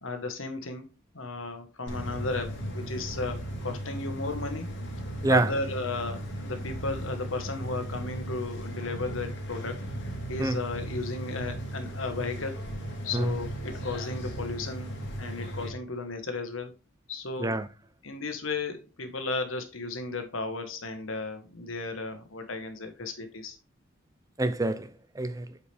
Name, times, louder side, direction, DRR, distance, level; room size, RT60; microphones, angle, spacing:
voice 1, 0.0-4.7 5.3-9.8 10.3-12.6 13.0-14.9 15.2-16.7 17.1-17.5 18.0-23.6, left 3 dB, 85° left, 1.4 m, -34 dB
sound 1, 1.9-15.7, right 1 dB, 60° left, 2.7 m, -36 dB
voice 2, 24.4-25.5, right 2 dB, 15° right, 0.5 m, -26 dB
8.2 x 4.9 x 3.4 m
head